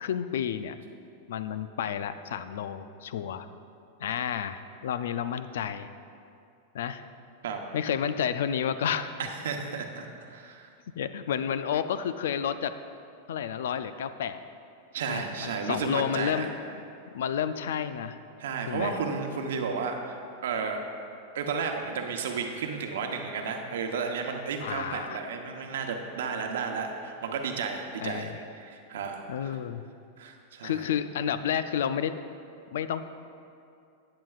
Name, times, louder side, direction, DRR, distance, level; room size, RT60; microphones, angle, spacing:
voice 1, 0.0-0.8 1.3-3.5 4.0-5.9 6.7-7.1 7.7-9.3 11.0-12.7 13.3-14.4 15.1-16.5 17.1-18.2 18.7-19.0 24.6-25.2 28.0-28.4 29.3-29.8 30.6-32.1 32.7-33.0, left 8 dB, 80° left, 12 dB, 0.4 m, -31 dB
voice 2, 9.4-10.7 14.9-16.5 18.4-20.2 20.4-20.8 21.3-28.3 28.6-29.5 30.2-30.8, right 5 dB, 85° right, 3 dB, 0.9 m, -33 dB
11.0 x 8.9 x 2.4 m, 2.5 s
supercardioid pair, 130°, 0 cm